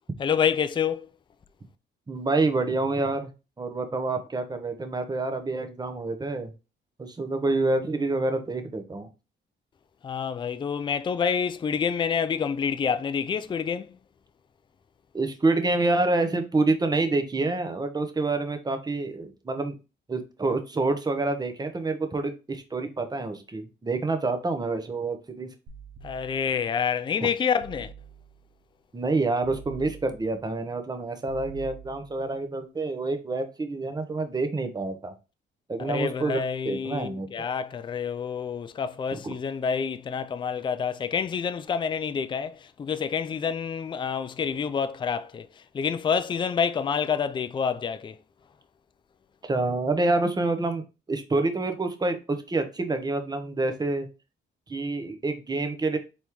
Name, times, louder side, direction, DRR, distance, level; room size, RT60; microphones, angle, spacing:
voice 1, 0.2-1.1 10.0-14.0 26.0-27.9 35.8-45.5 45.7-48.1, left 6 dB, 25° left, 0.4 m, -28 dB
voice 2, 2.1-3.3 3.6-6.5 7.0-9.1 15.1-19.8 20.1-25.5 28.9-35.1 35.7-37.5 39.1-39.3 49.4-54.1 54.7-56.0, right 3 dB, 20° right, 0.8 m, -27 dB
sound 1, 25.7-26.7 27.6-28.5 29.4-30.5 31.3-32.3, right 6 dB, 85° right, 0.8 m, -46 dB
4.2 x 3.4 x 3.0 m
cardioid pair, 90°, 20 cm